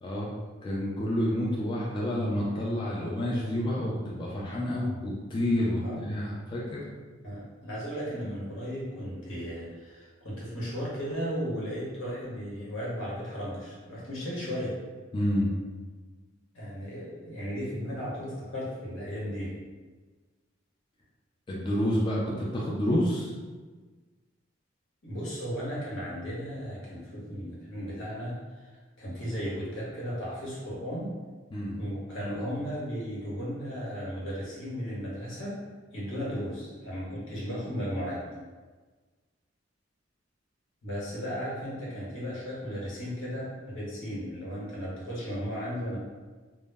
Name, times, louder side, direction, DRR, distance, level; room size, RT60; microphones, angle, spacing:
voice 1, 0.0-0.3 0.6-6.8 15.1-15.5 21.5-23.3 31.5-31.8, equal, 25° left, -5 dB, 0.3 m, -29 dB
voice 2, 7.2-14.8 16.5-19.5 25.0-28.7 29.0-31.1 31.8-35.6 35.9-38.2 40.8-46.0, equal, 85° left, -6 dB, 0.9 m, -35 dB
2.0 x 2.0 x 3.3 m, 1.3 s
head